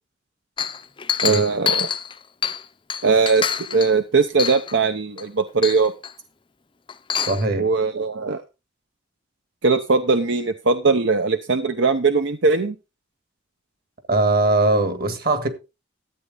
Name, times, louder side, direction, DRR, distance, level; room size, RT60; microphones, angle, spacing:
Chink clink, 0.6-2.6 2.9-3.9 4.4-4.8 5.2-5.3 5.6-6.1 6.9-7.4, left 7 dB, 25° left, 0.5 m, -26 dB
voice 1, 1.2-1.9 3.0-3.4 3.7-5.9 7.6-8.4 9.6-12.8, right 4 dB, 75° right, 0.8 m, -20 dB
voice 2, 7.3-7.7 14.1-15.5, right 2 dB, 50° right, 1.8 m, -20 dB
13.5 x 8.3 x 3.8 m
head